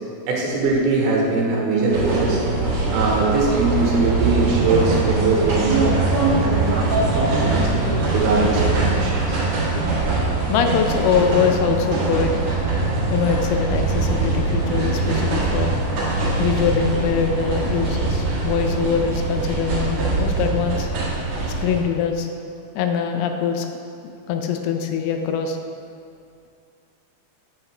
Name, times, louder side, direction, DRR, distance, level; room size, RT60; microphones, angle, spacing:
voice 1, 0.3-2.4 2.9-6.9 7.1-7.6 8.1-9.4, right 3 dB, 75° right, -3 dB, 3.0 m, -21 dB
sound 1, 1.9-21.8, right 3 dB, 55° right, 2.3 m, -22 dB
voice 2, 10.5-12.4 13.1-15.8 16.2-20.9 21.6-22.3 22.8-23.7 24.3-25.6, left 7 dB, 85° left, 5 dB, 2.5 m, -23 dB
7.9 x 7.4 x 3.2 m, 2.4 s
omnidirectional pair, 4.5 m